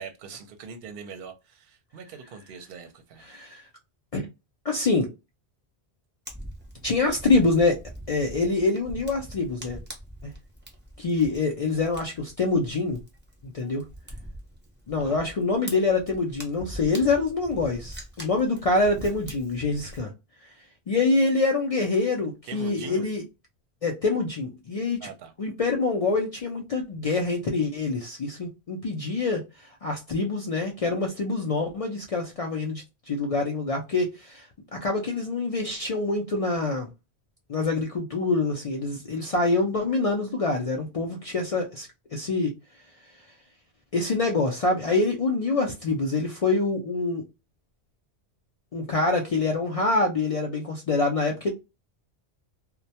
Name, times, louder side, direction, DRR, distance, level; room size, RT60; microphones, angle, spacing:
voice 1, 0.0-3.3 15.0-15.2 22.5-23.1 25.0-25.3, right 5 dB, 60° right, 0.7 m, -41 dB
voice 2, 3.3-3.6 4.1-4.3 4.6-5.1 6.8-7.8 8.1-9.8 10.2-10.3 11.0-13.0 13.5-13.8 14.9-20.1 20.9-23.2 23.8-25.0 25.4-29.4 29.8-34.5 34.7-36.9 37.5-42.5 43.9-47.2 48.7-51.5, left 3 dB, 65° left, 0.3 m, -25 dB
Fire, 6.3-20.0, right 1 dB, 15° right, 0.6 m, -43 dB
2.1 x 2.1 x 2.7 m
omnidirectional pair, 1.1 m